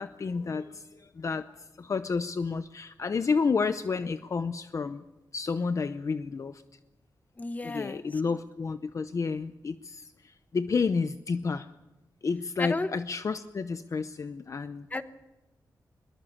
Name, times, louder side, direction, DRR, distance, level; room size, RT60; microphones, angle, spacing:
voice 1, 0.0-1.5 1.8-5.0 5.3-6.6 7.6-11.7 12.2-14.9, left 5 dB, 45° left, 11 dB, 0.7 m, -30 dB
voice 2, 7.4-8.2 12.6-12.9 14.9-15.0, left 2 dB, 20° left, 11 dB, 1.2 m, -33 dB
22.5 x 22.0 x 7.2 m, 1.0 s
wide cardioid pair, 145°, 7 cm